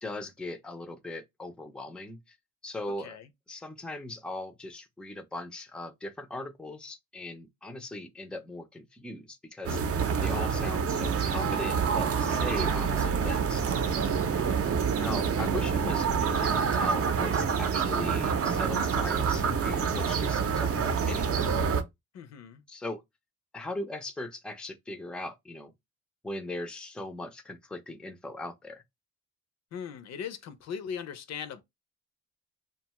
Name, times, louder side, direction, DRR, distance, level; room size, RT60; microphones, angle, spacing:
voice 1, 0.0-2.4 2.6-3.2 3.5-9.8 10.2-13.6 15.0-21.5 22.7-23.0 23.5-25.7 26.2-28.8, left 2 dB, 5° left, 0.4 m, -39 dB
sound 1, 9.6-21.8, right 6 dB, 50° right, 0.6 m, -27 dB
voice 2, 14.2-14.7 22.1-22.6 29.7-31.6, left 7 dB, 60° left, 0.6 m, -39 dB
2.6 x 2.3 x 2.9 m
cardioid pair, 90°, 30 cm